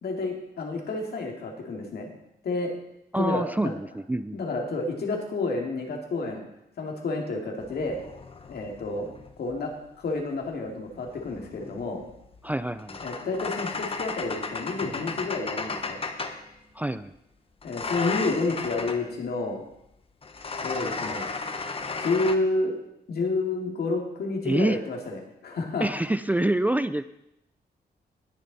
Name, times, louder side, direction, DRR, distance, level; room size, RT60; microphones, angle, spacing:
voice 1, 0.0-2.1 2.4-2.7 3.2-3.7 4.3-6.4 6.8-8.0 8.5-9.7 10.0-12.0 13.0-16.0 17.6-19.6 20.6-21.3 22.0-22.8 23.1-25.9, left 3 dB, 70° left, 1 dB, 2.4 m, -30 dB
voice 2, 3.1-4.4 12.4-13.0 16.7-17.1 24.4-24.8 25.8-27.1, right 1 dB, 10° right, 12 dB, 0.3 m, -26 dB
sound 1, 7.6-9.7 10.9-16.5 17.6-19.1 20.2-22.3, left 4 dB, 35° left, 0.9 m, -35 dB
Drum, 14.8-17.5, right 2 dB, 30° right, 3.5 m, -49 dB
20.0 x 6.8 x 4.1 m, 0.83 s
wide cardioid pair, 125°, 17 cm